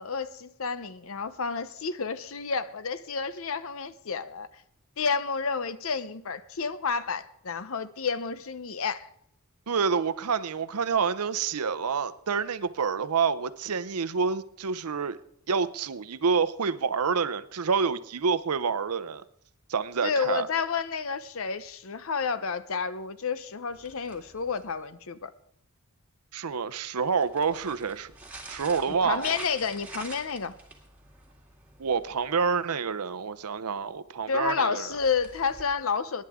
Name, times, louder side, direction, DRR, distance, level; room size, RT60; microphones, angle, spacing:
voice 1, 0.0-4.5 5.0-9.1 20.0-25.3 28.9-30.5 34.3-36.2, left 5 dB, 65° left, 0.7 m, -30 dB
voice 2, 9.7-15.2 15.5-19.2 19.7-20.5 26.3-28.1 28.5-29.4 31.8-34.9, right 5 dB, 90° right, 0.7 m, -28 dB
sound 1, 23.7-24.9 27.0-32.6 34.9-35.6, right 2 dB, 5° right, 2.2 m, -47 dB
23.5 x 10.5 x 3.6 m
head